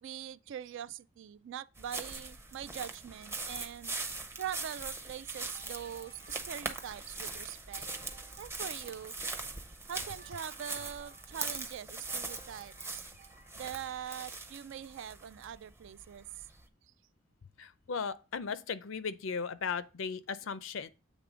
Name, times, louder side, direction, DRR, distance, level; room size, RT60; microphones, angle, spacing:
voice 1, 0.0-4.0 4.4-7.9 8.4-9.1 9.9-13.0 13.5-16.3, right 9 dB, 65° right, 0.3 m, -43 dB
sound 1, 1.8-16.6, right 3 dB, 10° right, 0.6 m, -41 dB
sound 2, 5.5-7.2 7.7-9.4 9.9-11.5 12.1-13.8, right 3 dB, 45° right, 0.8 m, -60 dB
voice 2, 17.6-20.9, left 5 dB, 70° left, 0.5 m, -37 dB
8.2 x 3.3 x 4.9 m
head